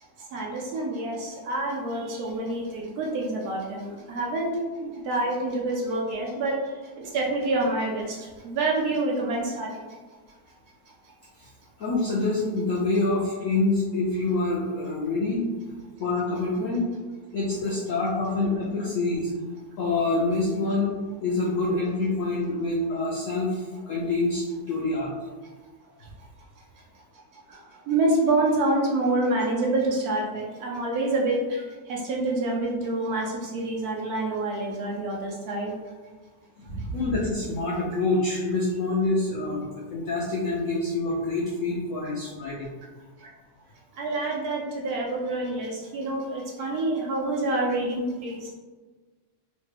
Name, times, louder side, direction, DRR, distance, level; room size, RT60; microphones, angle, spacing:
voice 1, 0.3-4.5 4.8-6.5 7.0-9.7 27.5-27.6 27.9-35.7 36.7-36.9 44.0-48.5, right 2 dB, 70° right, -2 dB, 1.0 m, -27 dB
voice 2, 11.8-15.4 16.0-16.9 17.3-19.3 19.8-25.1 36.9-42.7, left 2 dB, 75° left, -5 dB, 0.7 m, -26 dB
3.2 x 2.2 x 3.2 m, 1.3 s
omnidirectional pair, 1.9 m